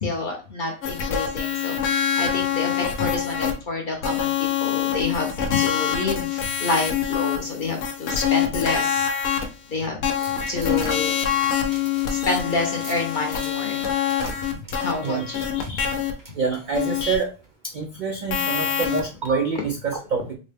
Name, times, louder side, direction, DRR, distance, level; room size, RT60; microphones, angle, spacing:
voice 1, 0.0-10.0 10.5-11.1 12.1-13.9 14.8-15.4, left 3 dB, 50° left, 1 dB, 0.6 m, -28 dB
sound 1, 0.8-3.5 4.0-9.4 10.0-16.1 16.7-17.1 18.3-19.3, left 8 dB, 90° left, 1.1 m, -25 dB
sound 2, 10.2-17.1 17.4-17.5, right 2 dB, 20° right, 0.5 m, -44 dB
voice 2, 15.0-15.9 16.3-17.3 17.6-20.3, right 5 dB, 85° right, 2 dB, 0.4 m, -27 dB
3.9 x 2.1 x 3.3 m, 0.34 s
omnidirectional pair, 1.4 m